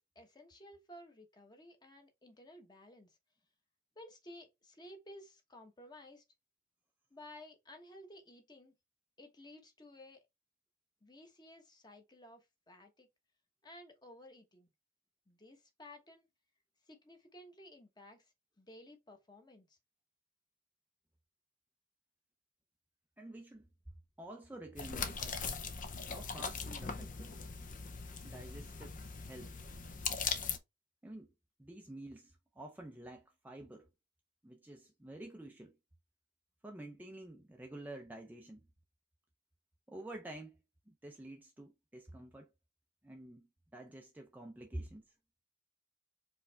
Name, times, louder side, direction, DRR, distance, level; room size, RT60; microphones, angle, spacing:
voice 1, 0.0-3.2 4.0-6.2 7.1-8.7 9.2-10.2 11.0-13.1 13.6-14.7 15.3-16.3 16.9-19.8, left 1 dB, 20° left, 1.2 m, -55 dB
voice 2, 23.2-23.7 24.2-25.2 26.0-27.4 28.2-29.6 31.0-31.3 31.6-33.9 34.4-35.8 36.6-38.7 39.9-42.5 43.0-45.0, right 1 dB, 10° right, 0.5 m, -49 dB
sound 1, 24.8-30.6, left 5 dB, 40° left, 0.7 m, -40 dB
4.9 x 3.2 x 3.4 m
head